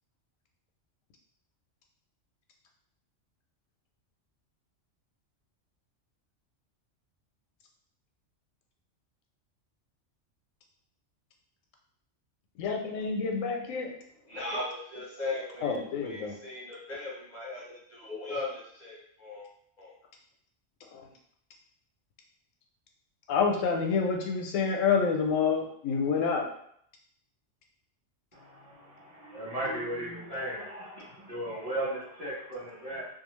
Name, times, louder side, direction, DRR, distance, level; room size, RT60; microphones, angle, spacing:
voice 1, 12.6-13.9 15.6-16.4 20.9-21.0 23.3-26.5, left 5 dB, 90° left, 2 dB, 1.0 m, -28 dB
voice 2, 14.2-17.6 17.9-19.5 19.8-19.9, left 2 dB, 45° left, -5 dB, 0.7 m, -38 dB
voice 3, 28.3-33.1, right 1 dB, 30° right, -9 dB, 1.0 m, -36 dB
2.7 x 2.3 x 3.0 m, 0.67 s
omnidirectional pair, 1.3 m